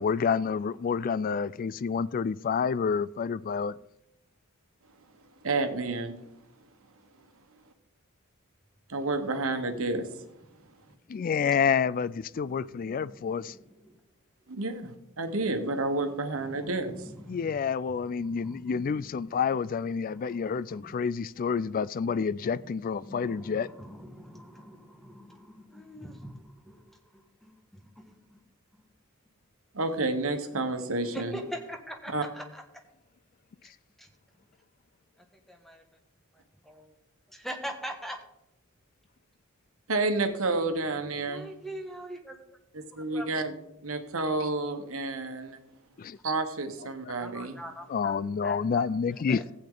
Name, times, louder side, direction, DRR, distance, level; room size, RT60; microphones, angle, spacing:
voice 1, 0.0-3.7 11.1-13.6 17.3-23.7 46.0-46.2 47.1-47.2 47.9-49.4, left 6 dB, 40° left, 0.3 m, -28 dB
voice 2, 5.4-6.2 8.9-10.1 14.5-17.1 29.7-31.3 32.1-32.2 39.9-41.5 42.7-43.5 43.8-45.6 46.2-47.6, right 2 dB, 75° right, 1.3 m, -30 dB
voice 3, 10.4-11.0 12.5-14.0 14.5-14.6 16.4-17.8 18.0-19.2 20.1-20.4 20.7-21.0 22.3-22.7 23.0-28.4 28.7-28.8 31.1-32.8 33.6-33.7 34.0-34.1 35.3-35.8 36.3-36.9 37.3-38.2 41.2-42.4 42.9-43.3 47.2-49.4, equal, ahead, 1.4 m, -44 dB
15.0 x 8.6 x 3.9 m
head